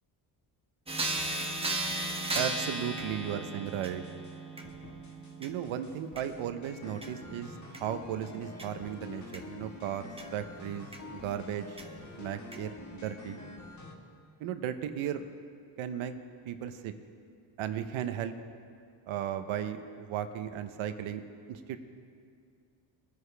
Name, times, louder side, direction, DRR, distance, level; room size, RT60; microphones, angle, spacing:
sound 1, 0.9-10.2 10.9-11.0 11.8-11.9 12.5-12.6, right 2 dB, 10° right, 1.2 m, -37 dB
voice 1, 2.3-4.0 5.4-11.8 12.2-13.5 14.4-15.3 15.8-16.1 16.4-16.9 17.6-18.3 19.1-21.2 21.5-21.8, right 9 dB, 75° right, 9 dB, 1.0 m, -36 dB
sound 2, 3.7-4.3 4.6-5.3 5.6-13.9, left 3 dB, 35° left, 1.6 m, -47 dB
22.0 x 9.6 x 3.4 m, 2.4 s
cardioid pair, 100°, 49 cm